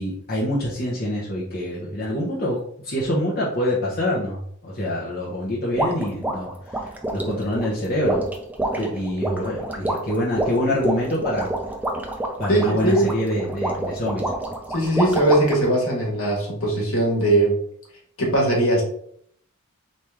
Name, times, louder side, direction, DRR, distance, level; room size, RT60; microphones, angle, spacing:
voice 1, 0.0-8.2 8.8-11.5 12.4-14.2, left 1 dB, 45° left, -6 dB, 0.9 m, -26 dB
sound 1, 5.8-15.7, right 1 dB, 5° right, 0.4 m, -28 dB
voice 2, 12.5-13.1 14.7-17.6 18.2-18.8, right 1 dB, 70° left, -2 dB, 1.6 m, -20 dB
4.1 x 3.2 x 3.5 m, 0.64 s
head